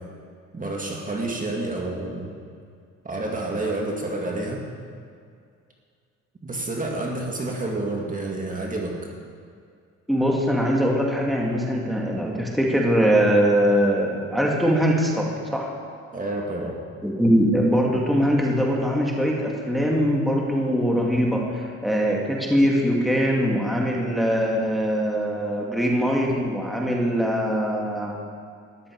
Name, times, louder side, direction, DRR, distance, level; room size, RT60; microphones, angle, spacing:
voice 1, 0.5-2.3 3.0-4.6 6.4-9.0 16.1-16.8, right 2 dB, 25° right, -1 dB, 2.2 m, -29 dB
voice 2, 10.1-15.7 17.0-28.1, equal, ahead, -2 dB, 2.2 m, -22 dB
14.0 x 11.0 x 4.7 m, 2.3 s
cardioid pair, 90°, 30 cm